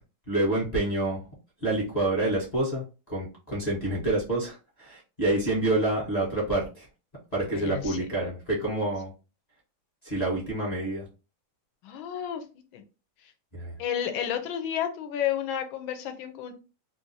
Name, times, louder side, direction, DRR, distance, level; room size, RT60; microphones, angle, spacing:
voice 1, 0.3-1.3 1.6-6.9 7.3-9.1 10.0-11.1 13.5-13.8, right 2 dB, 30° left, -6 dB, 0.7 m, -28 dB
voice 2, 7.5-8.3 10.1-10.2 11.8-12.4 12.7-12.8 13.8-16.5, left 9 dB, 75° left, 6 dB, 1.4 m, -31 dB
3.6 x 2.5 x 2.6 m, 0.32 s
omnidirectional pair, 2.3 m